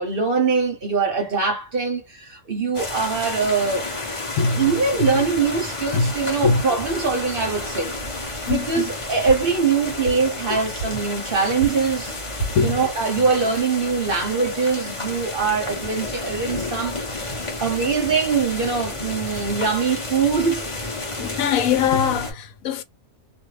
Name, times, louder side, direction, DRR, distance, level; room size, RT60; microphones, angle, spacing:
voice 1, 0.0-4.1 4.4-7.9 8.2-12.1 12.6-20.7, right 5 dB, 50° right, 0.8 m, -23 dB
sound 1, 2.7-22.3, left 2 dB, 25° left, 0.8 m, -31 dB
voice 2, 4.4-4.7 5.0-5.1 5.9-6.1 6.4-6.6 8.5-8.9 12.6-12.8 13.2-13.3 21.2-22.8, left 6 dB, 75° left, 1.0 m, -22 dB
sound 2, 8.5-10.4 10.8-12.7, right 3 dB, 50° left, 1.1 m, -31 dB
2.5 x 2.3 x 3.1 m
omnidirectional pair, 1.5 m